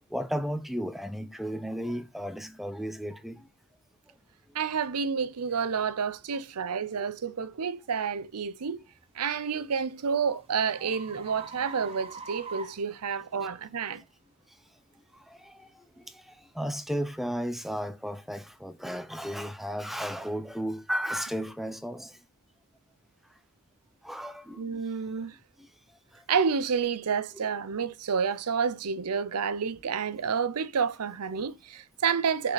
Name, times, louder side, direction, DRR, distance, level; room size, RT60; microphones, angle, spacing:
voice 1, 0.0-3.5 10.8-10.9 15.3-22.2 24.0-24.6 25.6-25.7 27.3-27.5, equal, ahead, 0.7 m, -34 dB
voice 2, 4.5-8.8 9.1-14.0 24.6-25.4 26.3-32.5, right 6 dB, 90° right, 0.6 m, -29 dB
sound 1, 4.8-4.9 5.5-5.7 6.3-6.5 9.1-13.6, right 4 dB, 25° right, 1.0 m, -45 dB
6.8 x 5.6 x 4.0 m
head